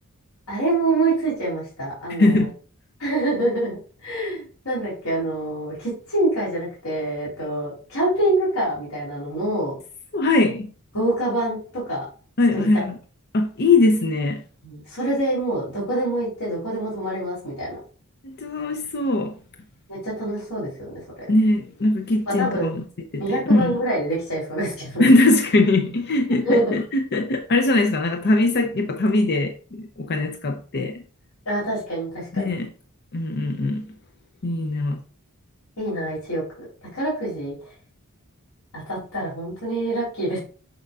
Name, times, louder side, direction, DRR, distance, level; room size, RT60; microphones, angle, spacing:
voice 1, 0.5-2.4 3.0-3.8 4.0-9.8 10.9-12.0 12.5-12.9 14.6-17.7 19.9-20.9 21.2-21.3 22.4-22.7 23.2-25.1 26.4-26.8 31.4-32.6 35.8-36.4 36.9-37.5 38.7-40.4, right 1 dB, 85° left, 3.4 m, -25 dB
voice 2, 2.2-2.5 10.1-10.7 12.4-13.0 13.3-14.4 18.2-19.4 21.3-22.8 23.1-23.8 25.0-31.0 32.3-32.7 33.1-33.9 34.4-35.0, left 2 dB, 50° left, 0.6 m, -21 dB
6.6 x 6.4 x 2.4 m
head